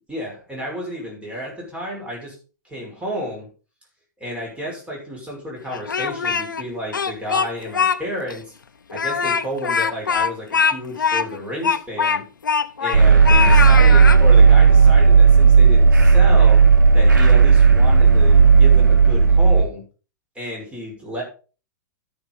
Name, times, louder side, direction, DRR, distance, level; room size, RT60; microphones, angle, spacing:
voice 1, 0.1-2.4 2.6-3.5 4.2-8.5 8.9-12.3 12.8-19.8 20.4-21.3, equal, 10° right, -2 dB, 5.7 m, -31 dB
Speech, 5.7-6.6 6.9-8.0 8.3-8.4 8.9-13.0 13.2-14.2, left 6 dB, 85° left, 0.8 m, -22 dB
sound 1, 12.9-19.6, right 5 dB, 85° right, 1.5 m, -12 dB
13.0 x 6.8 x 4.0 m, 0.36 s
hypercardioid pair, 110°, 10 cm